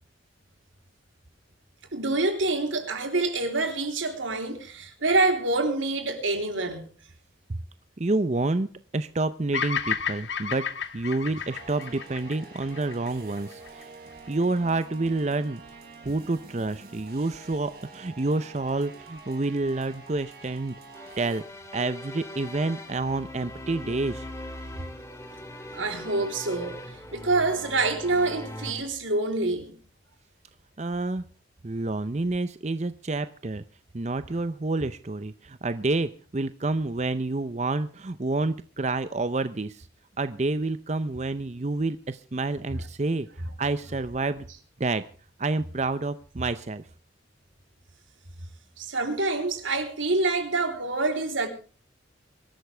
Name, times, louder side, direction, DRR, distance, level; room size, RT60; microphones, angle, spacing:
voice 1, 1.9-6.9 25.7-26.8 27.1-29.7 48.8-51.5, right 3 dB, 90° right, 3.6 m, -26 dB
voice 2, 8.0-8.7 8.9-10.6 10.9-13.9 14.3-15.6 16.0-20.7 21.2-21.4 21.7-24.3 30.8-31.3 31.6-33.6 33.9-39.9 40.2-43.3 43.6-44.5 44.8-45.0 45.4-46.8, right 2 dB, 35° right, 0.6 m, -28 dB
Bird vocalization bird call bird song, 9.5-13.8, left 7 dB, 70° left, 1.4 m, -32 dB
sound 1, 11.5-21.4, right 4 dB, 55° right, 4.5 m, -47 dB
sound 2, 20.9-28.7, left 1 dB, 15° left, 2.8 m, -40 dB
23.5 x 13.0 x 3.4 m
head